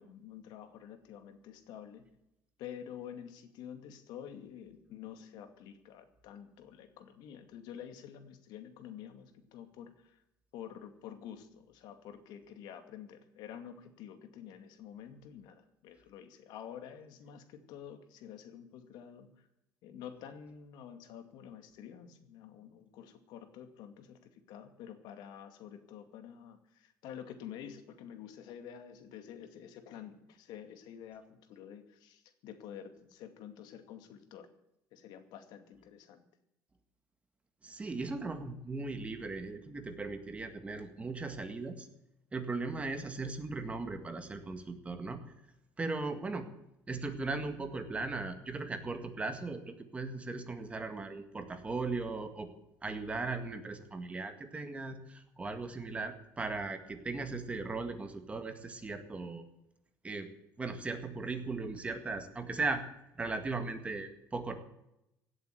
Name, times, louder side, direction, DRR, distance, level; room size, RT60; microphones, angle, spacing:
voice 1, 0.0-2.0 2.6-10.2 10.5-19.5 19.8-34.5 34.9-36.2, left 9 dB, 80° left, 8 dB, 2.3 m, -49 dB
voice 2, 37.6-41.9 42.3-45.2 45.8-46.5 46.9-52.5 52.8-59.4 60.0-60.3 60.6-62.8 63.2-64.5, right 3 dB, 20° right, 7 dB, 1.9 m, -38 dB
17.0 x 8.0 x 9.2 m, 0.84 s
cardioid pair, 145°, 7 cm